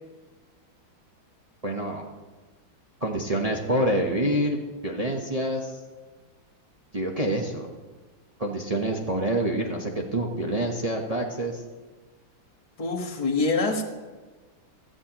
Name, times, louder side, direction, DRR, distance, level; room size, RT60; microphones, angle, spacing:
voice 1, 1.6-2.1 3.0-4.6 4.8-5.8 6.9-7.7 8.4-11.6, right 1 dB, 35° right, 0 dB, 0.6 m, -27 dB
voice 2, 12.8-13.8, left 3 dB, 20° left, 1 dB, 1.1 m, -25 dB
16.5 x 12.5 x 2.9 m, 1.3 s
omnidirectional pair, 2.2 m